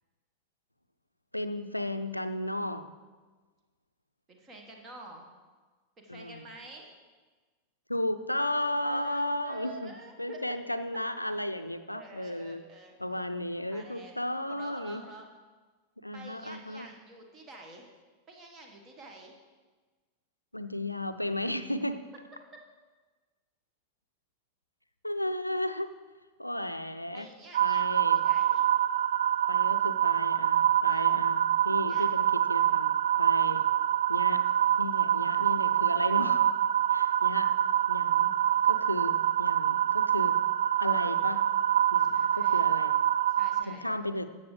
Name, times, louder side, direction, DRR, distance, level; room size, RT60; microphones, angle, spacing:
voice 1, 1.3-2.9 6.1-6.5 7.9-12.6 13.0-15.0 16.0-16.9 20.5-22.0 25.0-25.9 26.4-27.3 27.6-28.2 29.5-33.6 34.1-34.4 34.8-36.5 36.9-37.5 37.9-38.3 38.7-40.4 40.8-41.5 41.9-43.0 43.6-44.3, left 1 dB, 85° left, 10 dB, 0.4 m, -34 dB
voice 2, 4.3-5.3 6.0-6.9 8.8-10.4 11.9-13.0 13.7-14.1 14.5-15.3 16.1-17.8 18.3-19.4 27.1-28.6 30.9-31.1 31.8-32.1 42.0-42.6 43.3-43.8, right 2 dB, 25° right, 2 dB, 1.4 m, -48 dB
sound 1, 27.5-43.6, right 10 dB, 60° right, 0.3 m, -25 dB
13.5 x 7.1 x 3.2 m, 1.4 s
figure-of-eight pair, 90°, 0 cm